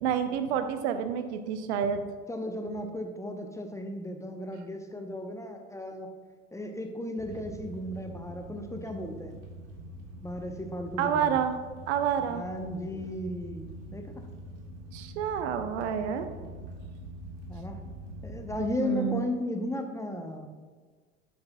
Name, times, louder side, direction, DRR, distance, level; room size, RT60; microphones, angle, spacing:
voice 1, 0.0-2.0 11.0-11.6 11.9-12.4 14.9-16.3 18.8-19.2, right 8 dB, 65° right, 9 dB, 0.7 m, -28 dB
voice 2, 2.3-6.1 6.5-9.3 10.2-11.4 12.2-14.1 17.5-17.8 18.2-20.5, left 1 dB, 10° left, 4 dB, 0.7 m, -35 dB
sound 1, 7.2-18.7, right 1 dB, 45° right, 2.0 m, -44 dB
9.7 x 7.7 x 2.2 m, 1.5 s
figure-of-eight pair, 70°, 37 cm